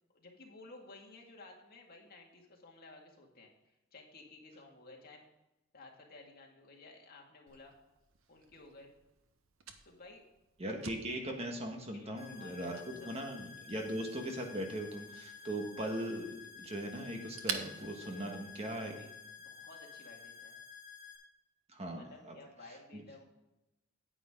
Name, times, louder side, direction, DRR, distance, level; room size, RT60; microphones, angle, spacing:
voice 1, 0.1-3.5 3.9-5.2 5.7-7.7 8.3-8.9 9.8-10.2 11.9-13.2 18.0-19.1 19.4-20.6 21.9-23.2, left 2 dB, 50° left, 0 dB, 2.1 m, -55 dB
Fire, 7.5-19.0, right 6 dB, 75° right, 1.0 m, -49 dB
voice 2, 10.6-12.7 13.0-18.9 21.7-22.3 22.9-23.0, right 1 dB, 30° right, 2 dB, 1.5 m, -39 dB
sound 1, 12.2-21.2, left 7 dB, 20° left, 2.7 m, -52 dB
9.7 x 9.1 x 3.7 m, 0.96 s
head